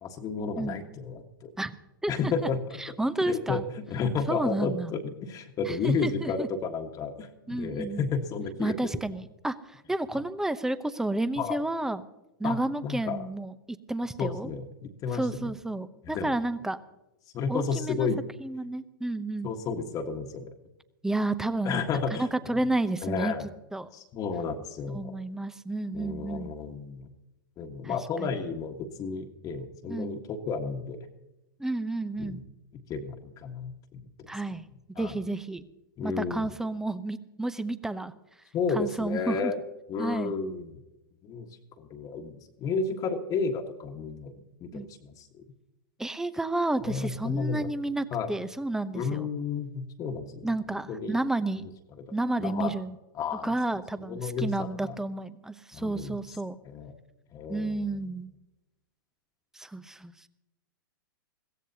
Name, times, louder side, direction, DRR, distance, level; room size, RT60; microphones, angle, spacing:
voice 1, 0.0-1.5 2.1-2.8 3.2-3.6 3.9-8.9 11.4-11.6 12.4-12.6 12.8-13.2 14.2-15.5 16.1-16.3 17.3-18.2 19.4-20.5 21.6-22.3 23.0-23.5 23.9-25.2 25.9-27.1 27.6-31.0 32.2-32.4 32.9-34.3 34.9-35.1 36.0-36.5 38.5-39.6 39.9-40.7 41.2-41.5 41.8-44.3 44.6-45.3 46.8-47.7 48.1-48.3 48.9-50.5 50.9-51.1 52.4-52.7 53.2-53.5 54.1-54.9 55.7-56.2 56.6-56.9 57.3-57.9, left 5 dB, 30° left, 3 dB, 1.5 m, -32 dB
voice 2, 2.8-3.6 4.3-4.9 5.7-6.5 7.5-8.0 8.6-12.0 12.4-14.5 15.1-16.8 17.5-18.1 18.4-19.5 21.0-21.8 22.1-23.4 23.7-23.9 24.9-26.5 27.8-28.4 29.9-30.2 31.6-32.4 34.3-34.7 35.0-35.7 36.0-38.1 38.7-39.5 40.0-40.3 44.7-44.9 46.0-49.3 50.4-51.7 52.1-52.9 53.4-56.6 57.5-58.3 59.5-60.3, right 2 dB, 5° right, 14 dB, 0.8 m, -31 dB
22.0 x 16.0 x 2.8 m, 0.95 s
hypercardioid pair, 110°, 12 cm